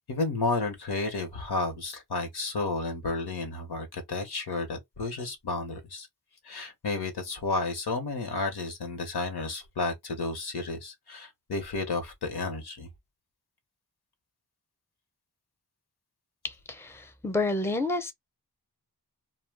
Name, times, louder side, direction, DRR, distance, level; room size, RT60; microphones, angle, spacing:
voice 1, 0.1-6.1 6.4-12.9, left 3 dB, 85° left, 0.9 m, -32 dB
voice 2, 16.4-18.1, left 2 dB, 5° left, 0.6 m, -30 dB
2.2 x 2.1 x 3.3 m
cardioid pair, 50°, 38 cm